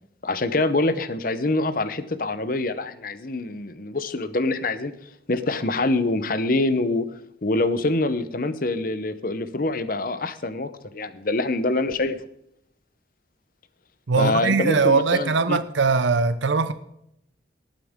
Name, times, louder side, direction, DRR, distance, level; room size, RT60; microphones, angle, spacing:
voice 1, 0.2-4.9 5.3-7.1 7.4-12.2 14.2-15.6, left 2 dB, 50° left, 0.8 m, -25 dB
voice 2, 14.1-16.7, right 4 dB, 80° right, 0.7 m, -21 dB
19.0 x 9.0 x 3.7 m
head